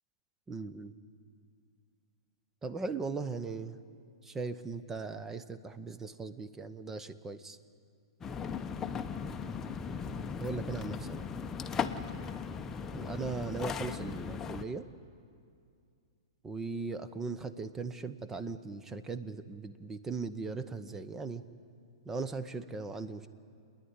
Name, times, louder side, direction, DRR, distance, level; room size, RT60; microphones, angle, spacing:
voice 1, 0.5-0.9 2.6-3.8 4.2-7.6 10.4-11.2 12.9-14.9 16.4-21.4 22.0-23.3, right 4 dB, 15° right, 12 dB, 0.8 m, -38 dB
sound 1, 8.2-14.6, left 6 dB, 15° left, 0.8 m, -37 dB
29.0 x 10.5 x 9.8 m, 2.3 s
hypercardioid pair, 125°, 2 cm